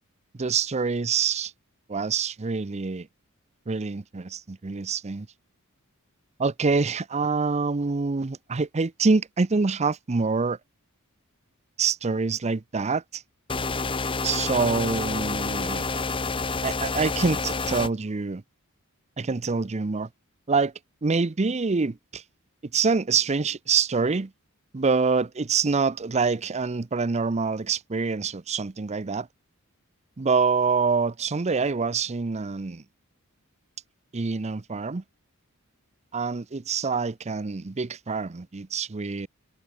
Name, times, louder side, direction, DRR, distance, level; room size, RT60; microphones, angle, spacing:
voice 1, 0.4-1.5 1.9-3.1 3.7-5.3 6.4-10.6 11.8-13.2 14.2-16.0 16.6-18.4 19.2-20.1 20.5-20.7 21.0-22.2 22.7-24.3 24.7-29.3 30.2-32.8 34.1-35.0 36.1-39.3, right 4 dB, 30° right, 0.6 m, -26 dB
sound 1, 13.5-17.9, left 4 dB, 25° left, 1.0 m, -28 dB
head